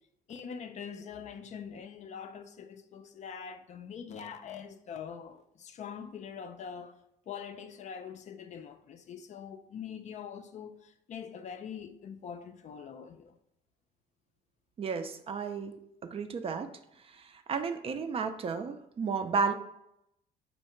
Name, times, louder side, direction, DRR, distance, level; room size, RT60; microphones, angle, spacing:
voice 1, 0.3-7.0 7.3-13.4, left 7 dB, 45° left, 0.4 m, -43 dB
voice 2, 14.8-15.7 16.0-16.7 17.1-19.5, right 5 dB, 35° right, 0.4 m, -33 dB
4.2 x 2.8 x 4.4 m
cardioid pair, 110°, 17 cm